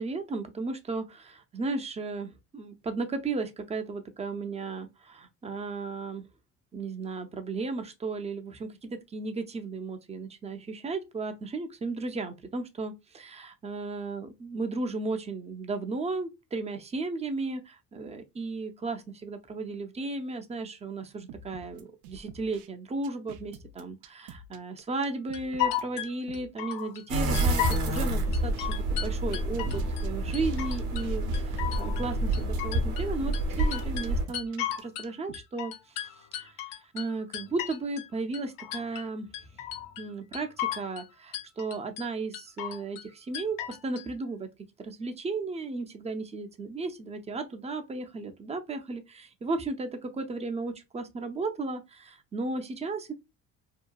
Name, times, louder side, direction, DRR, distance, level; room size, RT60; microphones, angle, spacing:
voice 1, 0.0-6.2 6.7-28.5 28.9-35.7 36.0-36.5 36.9-39.3 40.0-44.5 44.8-53.1, right 3 dB, 20° right, 0.5 m, -35 dB
sound 1, 21.3-22.7 23.0-26.5 26.8-26.9 27.3-28.7 29.0-32.6 33.3-35.4, right 4 dB, 85° right, 0.5 m, -47 dB
sound 2, 25.3-27.0 27.3-28.0 28.3-30.1 30.3-31.1 31.3-33.1 33.3-35.1 35.3-38.1 38.3-39.1 39.3-40.1 40.3-41.1 41.3-42.0 42.3-43.1 43.3-44.0, left 11 dB, 75° left, 0.6 m, -35 dB
sound 3, 27.1-34.2, right 1 dB, 60° right, 0.9 m, -28 dB
2.8 x 2.2 x 2.3 m
supercardioid pair, 85°, 34 cm